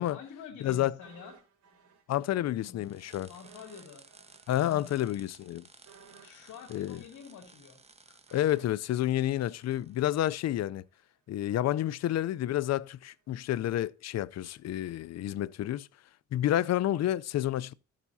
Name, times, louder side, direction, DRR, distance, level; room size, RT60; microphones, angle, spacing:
voice 1, 0.1-1.4 2.3-2.9 3.3-4.1 4.6-5.1 6.2-7.8, left 7 dB, 75° left, 2.7 m, -48 dB
voice 2, 0.6-0.9 2.1-3.3 4.5-5.7 6.7-7.0 8.3-10.8 11.3-15.9 16.3-17.7, left 13 dB, 60° left, 0.5 m, -29 dB
sound 1, 1.0-2.6 2.9-3.0 3.4-10.5 10.8-10.9, right 6 dB, 65° right, 3.8 m, -59 dB
sound 2, 2.8-10.0, right 3 dB, 20° right, 1.2 m, -58 dB
13.5 x 7.4 x 2.7 m
cardioid pair, 90°, 30 cm